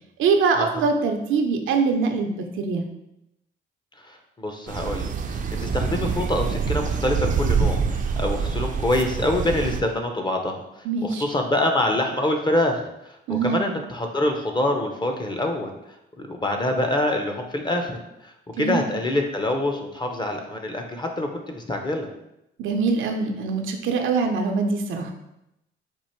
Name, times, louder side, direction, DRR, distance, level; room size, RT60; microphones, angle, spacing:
voice 1, 0.2-2.8 10.8-11.2 13.3-13.6 18.6-18.9 22.6-25.1, right 4 dB, 80° right, 4 dB, 0.6 m, -23 dB
voice 2, 4.0-10.6 11.0-15.7 16.2-22.1, left 1 dB, 20° left, 4 dB, 0.7 m, -25 dB
sound 1, 4.7-9.8, right 5 dB, 40° right, 0.5 m, -25 dB
4.5 x 2.5 x 4.4 m, 0.86 s
cardioid pair, 90°, 20 cm